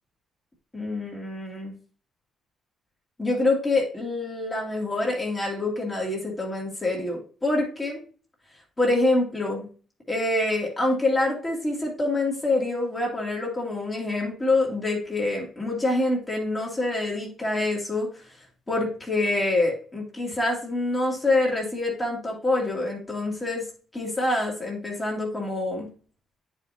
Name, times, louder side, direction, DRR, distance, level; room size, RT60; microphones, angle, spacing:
voice 1, 0.7-1.7 3.2-8.0 8.8-9.7 10.1-18.1 18.7-23.6 23.9-25.9, left 2 dB, 20° left, -3 dB, 2.1 m, -26 dB
9.6 x 4.9 x 2.7 m, 0.39 s
cardioid pair, 90°, 0 cm